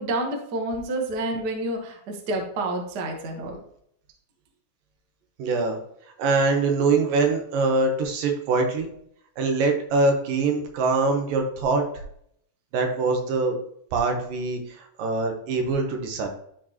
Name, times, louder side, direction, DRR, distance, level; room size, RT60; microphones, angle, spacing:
voice 1, 0.0-3.6, right 2 dB, 55° right, 2 dB, 1.1 m, -29 dB
voice 2, 5.4-5.8 6.2-8.9 9.4-11.8 12.7-13.6 13.9-14.6 15.0-16.3, right 3 dB, 75° right, 3 dB, 2.8 m, -23 dB
12.5 x 4.5 x 3.0 m, 0.68 s
omnidirectional pair, 4.0 m